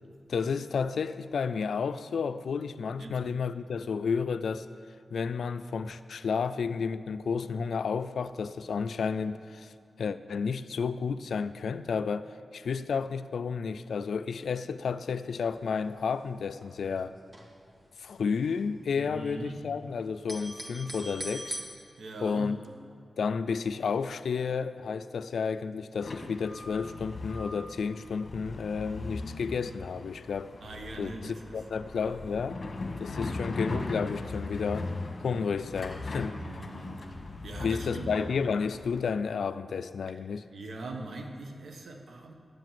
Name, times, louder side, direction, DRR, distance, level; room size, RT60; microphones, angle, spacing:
voice 1, 0.3-4.7 5.1-9.7 10.0-17.2 18.0-21.6 22.2-22.6 23.2-30.5 31.0-32.6 33.0-34.9 35.2-36.4 37.6-40.4, left 5 dB, 90° left, 13 dB, 0.4 m, -31 dB
sound 1, 15.2-15.6 15.9-16.0 16.2-17.9 18.2-19.8 20.1-21.6, right 1 dB, 35° right, 2.0 m, -41 dB
voice 2, 18.9-19.6 22.0-22.6 30.6-31.6 33.2-33.4 36.4-37.0 37.4-38.4 40.5-42.3, right 2 dB, 85° right, 3 dB, 1.4 m, -41 dB
sound 2, 26.0-39.0, left 2 dB, 55° left, 1.3 m, -39 dB
12.5 x 7.5 x 7.7 m, 2.4 s
wide cardioid pair, 75°, 0 cm